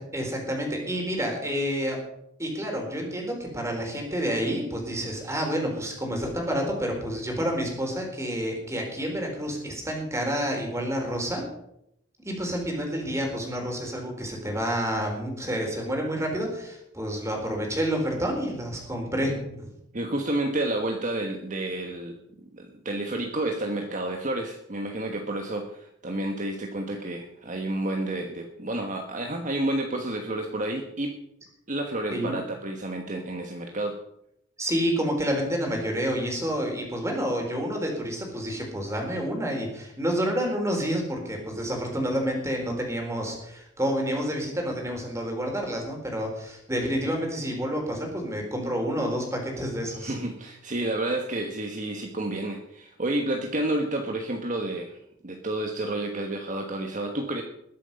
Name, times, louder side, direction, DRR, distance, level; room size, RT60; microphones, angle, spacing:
voice 1, 0.0-2.0 2.4-11.4 12.2-19.7 32.1-32.4 34.6-50.1, equal, 15° right, 1 dB, 3.9 m, -29 dB
voice 2, 19.9-31.1 31.7-34.0 50.0-55.0 55.2-57.4, right 1 dB, 45° right, 3 dB, 1.3 m, -30 dB
21.0 x 7.7 x 5.4 m, 0.78 s
head